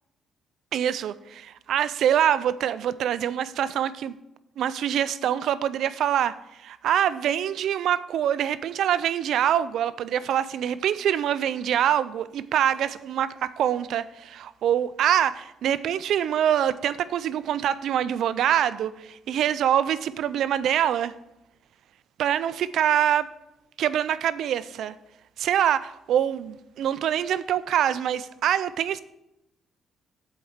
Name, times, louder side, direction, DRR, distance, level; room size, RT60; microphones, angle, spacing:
voice 1, 0.7-4.1 4.6-21.1 22.2-23.3 23.8-24.9 25.4-29.0, right 10 dB, 75° right, 16 dB, 0.4 m, -25 dB
7.8 x 4.7 x 7.1 m, 0.88 s
cardioid pair, 90°, 0 cm